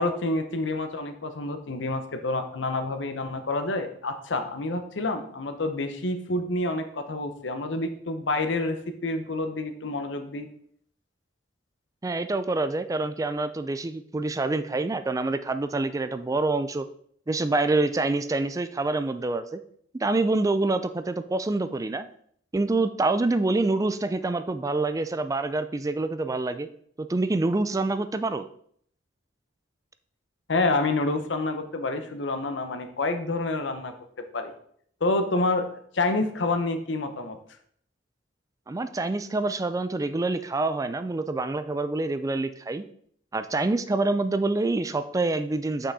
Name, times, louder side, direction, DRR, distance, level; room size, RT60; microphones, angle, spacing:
voice 1, 0.0-10.5 30.5-33.9 34.3-34.5 35.0-35.7 35.9-37.4, left 2 dB, 70° left, 8 dB, 0.8 m, -28 dB
voice 2, 12.0-16.9 17.3-19.6 19.9-22.1 22.5-26.7 27.0-28.5 38.7-42.8 43.3-45.9, right 2 dB, 20° right, 11 dB, 0.4 m, -26 dB
5.8 x 5.6 x 4.1 m, 0.64 s
head